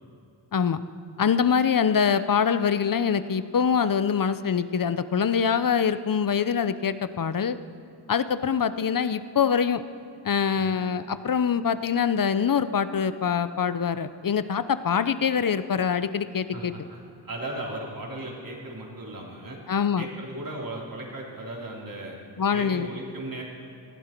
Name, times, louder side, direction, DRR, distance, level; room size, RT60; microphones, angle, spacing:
voice 1, 1.2-7.6 8.1-9.8 10.2-16.7 19.7-20.0 22.4-22.9, left 7 dB, 50° left, 13 dB, 0.7 m, -24 dB
voice 2, 16.5-17.0 17.2-19.6 20.0-22.2 22.5-23.4, right 1 dB, 50° right, -3 dB, 3.7 m, -36 dB
20.0 x 15.0 x 4.5 m, 2.8 s
wide cardioid pair, 80°, 43 cm